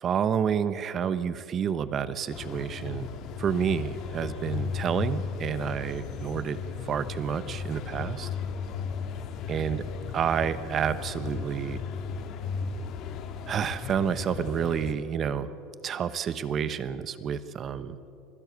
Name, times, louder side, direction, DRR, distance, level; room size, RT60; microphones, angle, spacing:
voice 1, 0.0-3.1 3.4-6.6 6.8-8.3 9.5-9.8 10.1-11.8 13.5-15.5 15.8-18.0, right 8 dB, 35° right, 14 dB, 1.0 m, -29 dB
sound 1, 2.3-14.9, left 6 dB, 50° left, 1.9 m, -36 dB
25.0 x 15.5 x 8.1 m, 2.8 s
supercardioid pair, 120°, 0 cm